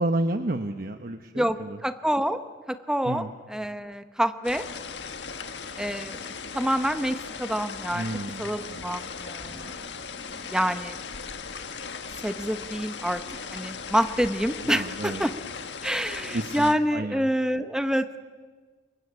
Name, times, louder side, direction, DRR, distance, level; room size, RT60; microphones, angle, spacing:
voice 1, 0.0-1.8 3.0-3.3 7.9-8.9 9.4-9.7 14.6-15.2 16.3-17.3, right 2 dB, 55° right, 7 dB, 1.1 m, -31 dB
voice 2, 1.3-2.4 2.7-4.7 5.8-9.7 10.4-11.0 12.2-13.2 13.5-15.3 15.8-18.2, equal, 5° right, 9 dB, 1.1 m, -27 dB
sound 1, 4.4-16.7, left 5 dB, 90° left, 1.6 m, -38 dB
29.0 x 23.0 x 8.5 m, 1.4 s
head